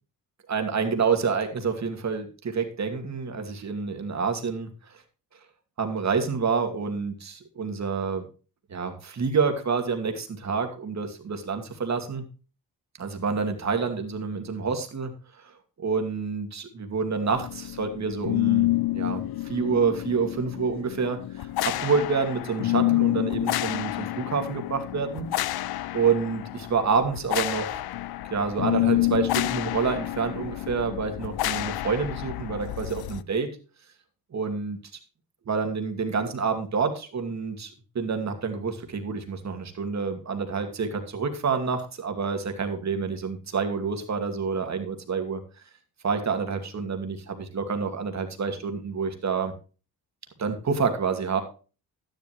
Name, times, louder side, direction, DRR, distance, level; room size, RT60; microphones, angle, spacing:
voice 1, 0.5-4.7 5.8-8.3 8.7-12.2 13.0-15.1 15.4-15.5 15.8-18.7 18.9-25.3 25.9-27.8 28.3-33.5 34.3-34.8 35.5-45.4 46.0-49.5 50.4-51.4, right 5 dB, 50° right, 5 dB, 2.5 m, -28 dB
sound 1, 17.4-33.2, left 16 dB, 80° left, 0.6 m, -28 dB
12.5 x 11.0 x 3.1 m, 0.35 s
cardioid pair, 110°, 36 cm